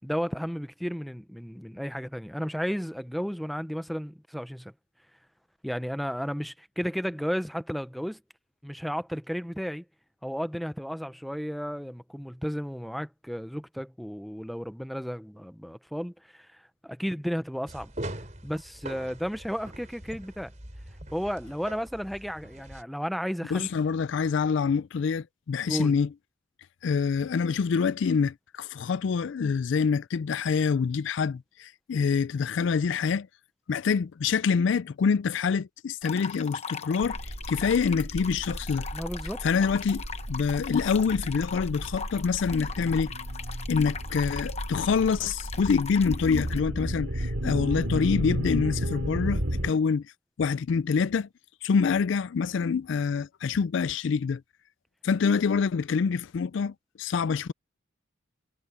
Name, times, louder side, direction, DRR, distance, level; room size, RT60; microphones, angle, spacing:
voice 1, 0.0-4.7 5.6-8.2 8.6-9.8 10.2-16.5 16.8-17.9 18.4-20.5 21.1-23.7 25.7-26.0 38.9-39.4, equal, ahead, 0.6 m, -33 dB
sound 1, 17.7-22.8, right 1 dB, 35° right, 4.4 m, -42 dB
voice 2, 23.5-26.1 26.8-33.3 33.7-37.2 37.5-38.9 39.4-43.1 43.7-50.0 50.4-51.3 51.6-54.4 55.0-57.5, left 5 dB, 65° left, 0.4 m, -26 dB
sound 2, 36.0-46.6, left 6 dB, 30° left, 1.0 m, -40 dB
sound 3, 37.0-49.7, right 1 dB, 75° right, 2.5 m, -34 dB
head